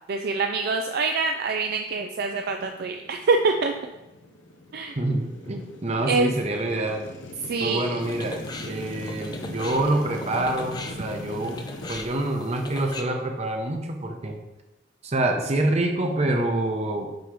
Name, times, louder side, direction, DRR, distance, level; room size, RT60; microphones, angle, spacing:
voice 1, 0.1-3.7 4.7-5.0 6.1-6.3 7.5-7.9, right 4 dB, 55° right, 4 dB, 0.4 m, -25 dB
Motorcycle, 2.6-11.9, left 1 dB, 90° left, 0.9 m, -40 dB
voice 2, 5.0-7.1 7.6-8.4 8.7-11.6 11.9-14.4 15.0-17.1, right 1 dB, 35° right, 3 dB, 0.9 m, -26 dB
sound 1, 8.0-13.0, left 3 dB, 20° left, 0.5 m, -40 dB
7.8 x 3.1 x 5.3 m, 1.0 s
head